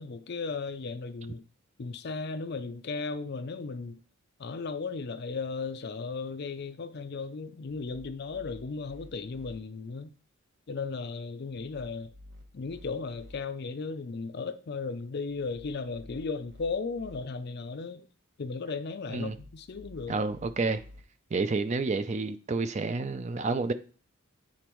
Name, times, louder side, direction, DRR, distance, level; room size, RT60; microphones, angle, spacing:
voice 1, 0.0-1.4 1.8-4.0 4.4-10.1 10.7-12.1 12.5-18.0 18.4-20.2, left 4 dB, 50° left, 0.4 m, -36 dB
sound 1, 7.7-9.6 11.5-13.4 15.3-17.2 19.1-21.0, left 1 dB, 50° right, 1.0 m, -52 dB
voice 2, 20.1-20.8 21.3-23.7, right 3 dB, 30° right, 0.4 m, -29 dB
8.7 x 4.2 x 3.0 m
head